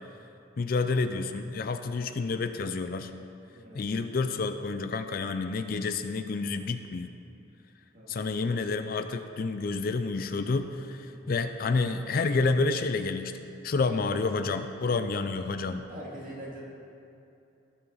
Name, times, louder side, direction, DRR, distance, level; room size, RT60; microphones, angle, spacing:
voice 1, 0.6-3.1 3.7-7.1 8.1-13.3 13.6-15.8, left 3 dB, 45° left, 9 dB, 0.4 m, -29 dB
voice 2, 3.5-3.9 7.9-8.4 11.1-11.5 15.9-16.6, right 1 dB, 40° right, -5 dB, 2.1 m, -44 dB
17.0 x 5.8 x 4.0 m, 2.7 s
head